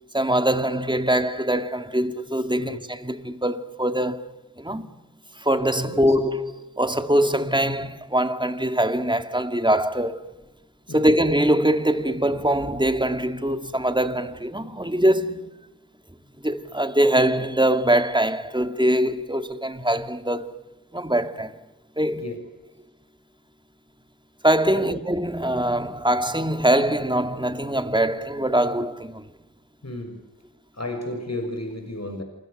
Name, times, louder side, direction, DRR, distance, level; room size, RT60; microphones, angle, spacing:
voice 1, 0.1-4.2 4.6-4.9 5.3-10.2 10.9-15.6 16.4-20.6 20.9-21.6 22.0-22.3 24.4-29.3, right 1 dB, 15° right, 2.4 m, -23 dB
voice 2, 29.8-30.2 30.7-32.2, left 1 dB, 45° left, 6.3 m, -33 dB
29.5 x 27.5 x 6.7 m
wide cardioid pair, 55°, 35 cm